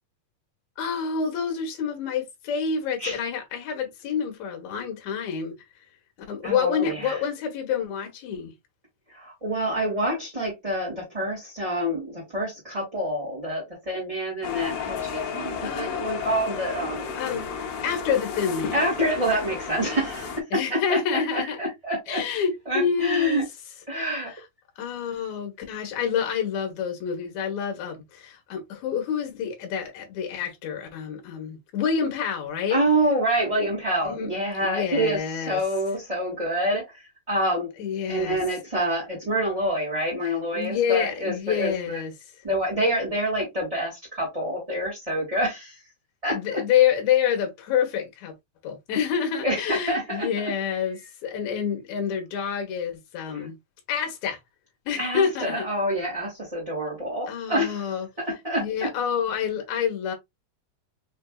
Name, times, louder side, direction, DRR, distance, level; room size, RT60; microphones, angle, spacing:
voice 1, 0.8-5.6 6.3-8.5 15.6-16.2 17.2-17.5 17.8-18.7 20.5-21.6 22.1-23.4 24.2-24.4 24.8-32.8 34.0-34.3 34.6-35.6 37.8-38.4 40.5-42.1 46.3-48.3 48.6-53.6 53.9-54.4 54.9-55.7 57.3-58.1 58.6-60.1, left 7 dB, 65° left, 2.3 m, -27 dB
voice 2, 6.4-7.2 9.1-17.1 18.7-22.2 22.6-23.4 23.9-24.3 32.7-37.7 38.1-42.0 42.4-45.8 46.2-46.6 49.4-50.5 53.3-53.5 55.0-57.8 58.3-58.9, right 1 dB, 20° right, 1.1 m, -27 dB
sound 1, 14.4-20.4, left 6 dB, 90° left, 1.3 m, -32 dB
5.4 x 2.6 x 2.3 m
omnidirectional pair, 3.8 m